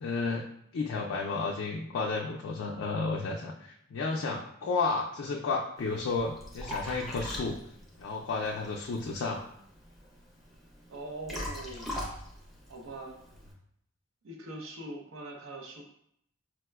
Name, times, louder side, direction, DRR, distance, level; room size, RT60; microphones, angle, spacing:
voice 1, 0.0-0.4 0.7-7.6 8.0-9.4, left 4 dB, 70° left, -1 dB, 0.3 m, -32 dB
Liquid, 5.8-13.5, left 1 dB, ahead, 0.5 m, -42 dB
voice 2, 10.9-12.0 12.7-13.2 14.2-15.8, right 2 dB, 75° right, 2 dB, 0.6 m, -42 dB
4.6 x 2.1 x 2.2 m, 0.72 s
head